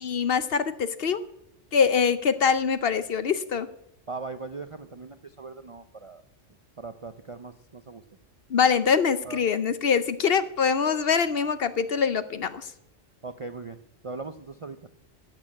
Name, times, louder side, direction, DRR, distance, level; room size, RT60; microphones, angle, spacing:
voice 1, 0.0-1.2 1.7-3.7 8.5-12.7, left 6 dB, 55° left, 13 dB, 0.8 m, -24 dB
voice 2, 4.1-6.2 6.8-8.0 9.2-9.4 13.2-13.8 14.0-14.9, right 3 dB, 45° right, 9 dB, 0.4 m, -39 dB
12.0 x 8.7 x 8.5 m, 0.81 s
omnidirectional pair, 1.3 m